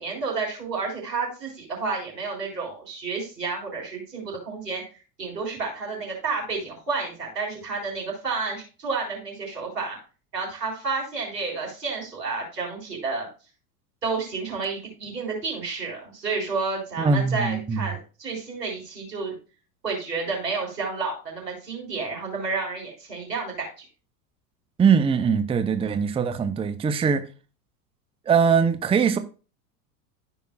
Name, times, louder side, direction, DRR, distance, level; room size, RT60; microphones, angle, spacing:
voice 1, 0.0-4.8 5.2-10.0 10.3-13.3 14.0-19.3 19.8-23.8, right 4 dB, 90° right, 4.2 m, -30 dB
voice 2, 17.0-17.9 24.8-27.2 28.3-29.2, right 6 dB, 10° right, 0.6 m, -21 dB
13.5 x 5.5 x 2.3 m
hypercardioid pair, 90°, 48 cm